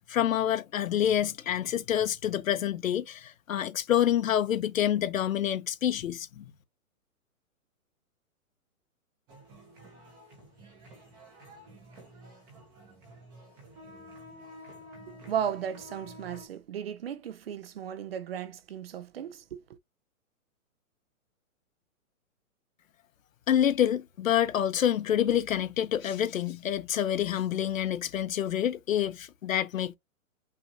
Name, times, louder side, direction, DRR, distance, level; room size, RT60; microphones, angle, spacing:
voice 1, 0.1-6.4 23.5-30.0, left 10 dB, 65° left, 0.9 m, -27 dB
sound 1, 9.3-16.5, equal, 10° right, 0.7 m, -50 dB
voice 2, 15.1-19.6, right 9 dB, 45° right, 0.6 m, -35 dB
5.7 x 2.6 x 2.8 m
hypercardioid pair, 165°, 43 cm